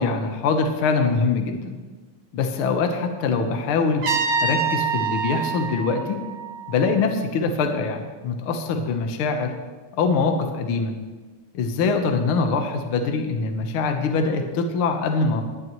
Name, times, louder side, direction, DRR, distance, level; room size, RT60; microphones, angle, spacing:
voice 1, 0.0-1.8 2.3-4.1 4.4-6.2 6.7-9.5 10.0-11.0 11.5-15.4, left 4 dB, 65° left, 4 dB, 1.4 m, -23 dB
Trumpet, 4.0-6.9, right 5 dB, 50° right, 1.1 m, -26 dB
19.5 x 11.0 x 3.1 m, 1.3 s
omnidirectional pair, 3.6 m